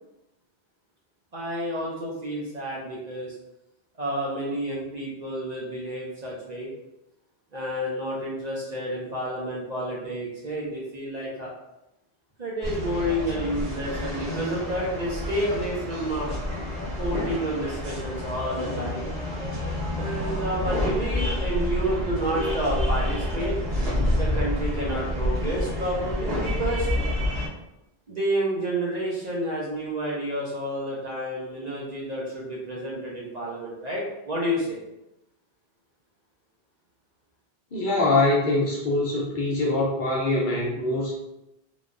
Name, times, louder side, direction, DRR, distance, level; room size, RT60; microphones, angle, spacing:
voice 1, 1.3-3.4 4.0-6.7 7.5-11.5 12.4-16.3 17.0-19.1 19.9-23.5 24.1-26.9 28.1-34.8, right 1 dB, 50° right, -4 dB, 0.6 m, -30 dB
sound 1, 12.6-27.5, left 1 dB, 85° right, 1.2 m, -28 dB
voice 2, 37.7-41.1, left 2 dB, 55° left, -4 dB, 0.8 m, -23 dB
3.3 x 2.2 x 2.5 m, 0.91 s
omnidirectional pair, 1.1 m